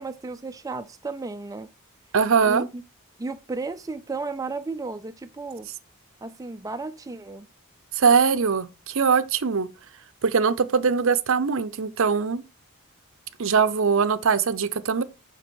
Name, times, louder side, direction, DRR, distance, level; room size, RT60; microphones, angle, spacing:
voice 1, 0.0-1.7 2.4-2.8 3.2-5.7 6.2-7.5, right 3 dB, 15° right, 0.4 m, -33 dB
voice 2, 2.1-2.6 8.0-9.7 10.2-12.4 13.4-15.0, right 5 dB, 60° right, 0.6 m, -21 dB
6.9 x 5.9 x 4.5 m
head